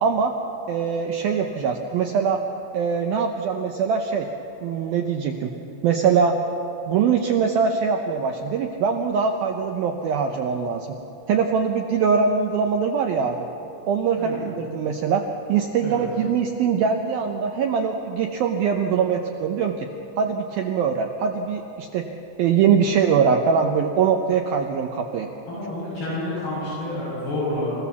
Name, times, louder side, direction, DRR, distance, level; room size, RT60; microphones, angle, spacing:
voice 1, 0.0-0.4 0.7-2.4 2.7-4.3 4.6-5.5 5.8-6.4 6.9-10.9 11.3-13.5 13.9-15.2 15.5-19.9 20.2-22.1 22.4-25.3, right 6 dB, 80° right, 4 dB, 2.2 m, -22 dB
voice 2, 25.5-27.7, left 1 dB, 60° left, -9 dB, 8.5 m, -29 dB
28.5 x 16.0 x 7.1 m, 2.9 s
omnidirectional pair, 5.4 m